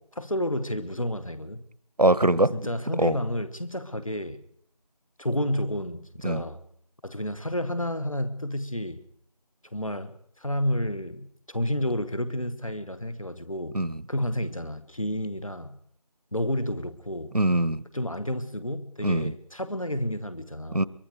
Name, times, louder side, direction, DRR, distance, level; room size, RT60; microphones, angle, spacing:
voice 1, 0.2-1.7 2.5-4.4 5.2-6.6 7.0-9.1 9.7-13.8 14.1-15.8 16.3-17.4 17.9-20.9, left 1 dB, 55° left, 1.8 m, -30 dB
voice 2, 2.0-2.5 3.0-3.2 6.2-6.4 13.7-13.9 17.3-17.8 19.0-19.3 20.7-20.8, right 1 dB, 75° right, 1.2 m, -22 dB
24.0 x 23.0 x 5.0 m
figure-of-eight pair, 175°, 20 cm